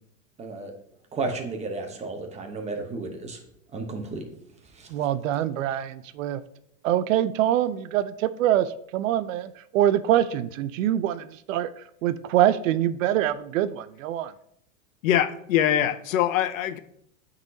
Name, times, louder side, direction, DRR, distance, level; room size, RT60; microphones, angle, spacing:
voice 1, 0.4-0.7 1.1-3.4 3.7-4.3 4.7-4.9, right 3 dB, 15° right, 3 dB, 1.0 m, -33 dB
voice 2, 4.9-6.4 6.8-11.7 12.0-14.3, right 12 dB, 75° right, 14 dB, 0.6 m, -24 dB
voice 3, 15.0-16.8, left 10 dB, 85° left, 12 dB, 0.7 m, -23 dB
9.1 x 4.0 x 2.7 m, 0.72 s
supercardioid pair, 130°, 39 cm